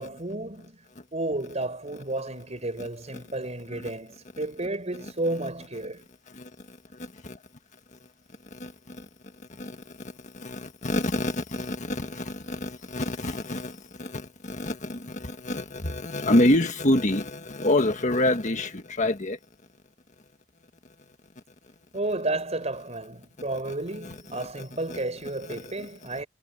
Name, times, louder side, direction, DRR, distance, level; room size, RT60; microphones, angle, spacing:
voice 1, 0.0-0.8 1.1-6.0 21.9-26.3, right 2 dB, 35° right, 5.0 m, -32 dB
voice 2, 6.3-7.4 7.9-8.0 8.5-9.0 9.5-19.4 23.6-25.0 25.4-25.9, left 1 dB, 40° left, 1.6 m, -28 dB
head